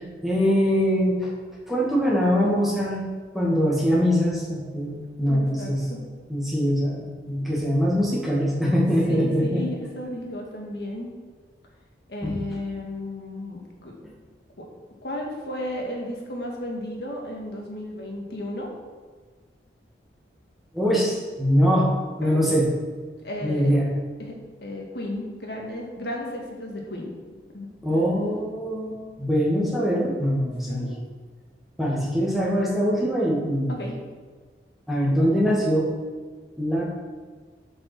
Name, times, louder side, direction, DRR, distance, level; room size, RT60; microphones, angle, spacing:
voice 1, 0.2-1.3 1.7-3.1 3.3-5.8 6.3-9.6 12.2-12.4 20.7-21.9 22.2-22.7 23.4-23.9 27.8-30.9 31.8-33.8 34.9-35.9 36.6-36.9, equal, ahead, -5 dB, 2.0 m, -23 dB
voice 2, 5.3-6.0 9.1-11.2 12.1-13.9 14.6-14.7 15.0-18.7 22.2-22.4 23.2-23.7 24.2-27.2 27.5-28.1 30.7-31.1 33.7-34.0, left 1 dB, 60° left, 0 dB, 1.9 m, -34 dB
8.1 x 5.4 x 6.1 m, 1.5 s
head